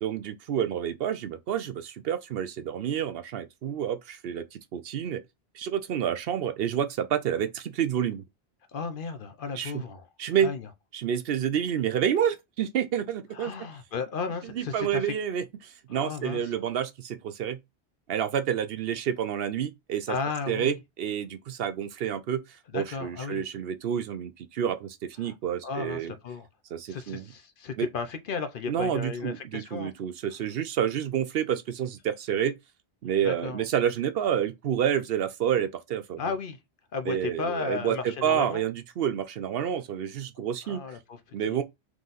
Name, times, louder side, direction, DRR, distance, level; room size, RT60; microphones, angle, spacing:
voice 1, 0.0-5.2 5.5-8.2 9.6-9.8 10.2-10.5 10.9-13.5 14.5-17.6 18.1-20.2 20.5-26.1 26.7-27.3 27.8-27.9 28.7-32.5 33.0-36.2 37.1-40.8 41.3-41.6, right 9 dB, 70° right, 0.8 m, -29 dB
voice 2, 8.7-10.0 10.4-10.7 13.3-15.1 15.9-16.5 20.1-20.8 22.7-23.4 25.2-25.3 25.6-26.5 26.9-29.9 33.2-33.6 36.2-36.6 36.9-38.6 40.6-41.2 41.5-41.6, left 5 dB, 60° left, 0.7 m, -34 dB
3.9 x 3.1 x 3.9 m
omnidirectional pair, 1.1 m